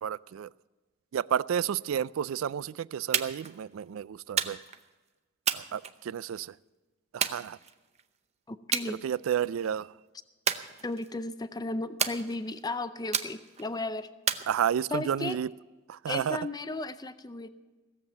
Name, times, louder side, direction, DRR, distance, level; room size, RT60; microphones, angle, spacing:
voice 1, 0.0-0.5 1.1-4.6 5.5-6.5 7.1-7.6 8.9-9.9 14.5-15.5 15.9-16.4, right 9 dB, 80° right, 0.3 m, -31 dB
sound 1, 3.1-3.5 4.4-4.8 5.5-6.4 7.2-8.0 8.7-8.9 9.3-9.7 10.5-11.2 12.0-12.6 13.1-13.7 14.3-15.1, right 7 dB, 30° right, 0.7 m, -32 dB
voice 2, 8.5-9.0 10.8-14.1 14.9-15.4 16.1-17.5, left 2 dB, 20° left, 0.5 m, -35 dB
17.0 x 7.4 x 7.8 m
head